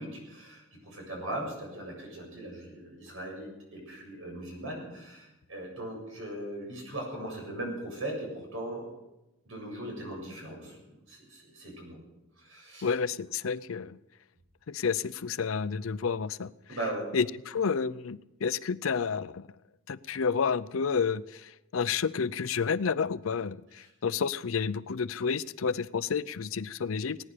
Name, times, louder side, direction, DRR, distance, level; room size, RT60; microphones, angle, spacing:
voice 1, 0.0-8.9 9.5-12.0 12.4-12.9 16.7-17.1 23.8-23.9, right 1 dB, 70° right, 0 dB, 7.3 m, -39 dB
voice 2, 12.8-14.0 14.7-16.5 17.1-19.5 19.9-27.2, left 6 dB, 80° left, 17 dB, 0.5 m, -30 dB
19.0 x 10.0 x 6.7 m, 0.96 s
head